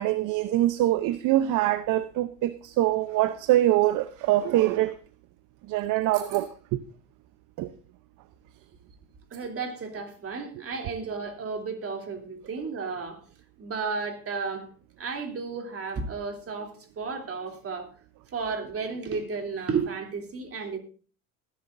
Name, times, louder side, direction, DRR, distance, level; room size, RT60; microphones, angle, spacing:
voice 1, 0.0-4.9 5.7-6.8 7.6-7.7, right 14 dB, 55° right, 0.8 m, -24 dB
voice 2, 9.3-13.2 13.6-14.7 15.0-17.9 18.3-20.8, right 5 dB, 35° right, 3.2 m, -33 dB
20.0 x 11.0 x 2.6 m
hypercardioid pair, 80°, 37 cm